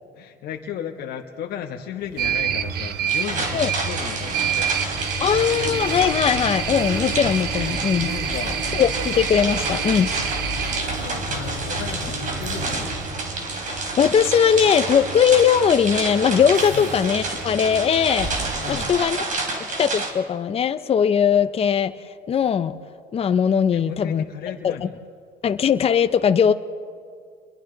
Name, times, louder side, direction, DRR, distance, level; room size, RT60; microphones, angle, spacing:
voice 1, 0.1-4.8 8.0-8.6 11.0-13.1 16.7-16.9 18.6-18.9 23.7-24.9, left 9 dB, 70° left, 2 dB, 1.3 m, -35 dB
sound 1, 2.0-19.1, right 1 dB, 85° right, 4.1 m, -33 dB
sound 2, 2.2-10.8, right 9 dB, 70° right, 1.1 m, -28 dB
sound 3, 3.1-20.1, right 3 dB, 50° right, 3.5 m, -30 dB
voice 2, 5.2-8.1 8.7-10.1 13.7-18.3 18.7-19.2 19.8-21.9 22.3-22.8 23.1-24.2 24.6-24.9 25.4-26.5, left 7 dB, 35° left, 10 dB, 0.7 m, -19 dB
30.0 x 22.0 x 3.9 m, 2.2 s
cardioid pair, 110°, 17 cm